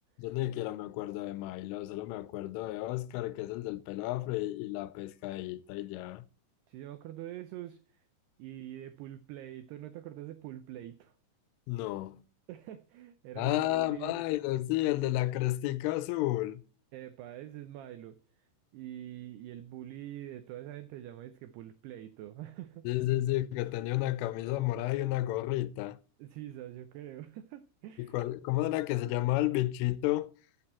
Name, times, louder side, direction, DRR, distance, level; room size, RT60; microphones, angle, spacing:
voice 1, 0.2-6.2 11.7-12.2 13.4-16.6 22.9-26.0 28.0-30.3, left 16 dB, 90° left, 3.2 m, -32 dB
voice 2, 6.7-8.0 8.4-11.2 12.5-14.2 15.0-15.1 16.9-18.5 18.7-22.9 26.2-28.1, right 13 dB, 90° right, 2.3 m, -45 dB
14.0 x 8.1 x 4.3 m
omnidirectional pair, 5.6 m